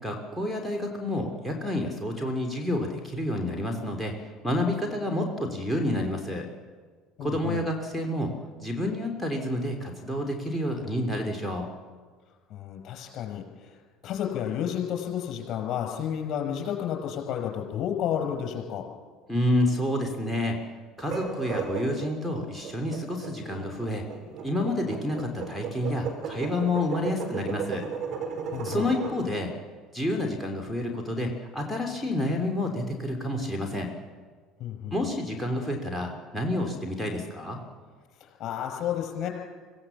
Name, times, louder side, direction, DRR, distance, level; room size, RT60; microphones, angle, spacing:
voice 1, 0.0-4.1 4.4-6.5 7.2-8.3 8.6-11.7 19.3-20.6 21.0-24.0 24.4-27.9 28.6-29.5 29.9-33.9 34.9-37.6, left 1 dB, 5° left, 1 dB, 3.2 m, -29 dB
voice 2, 7.2-7.6 12.5-13.8 14.0-18.8 28.5-28.9 34.6-34.9 38.2-39.3, left 9 dB, 50° left, 3 dB, 5.3 m, -31 dB
sound 1, 21.0-29.2, right 6 dB, 55° right, 5.2 m, -35 dB
25.0 x 16.0 x 7.2 m, 1.5 s
hypercardioid pair, 65°, 0 cm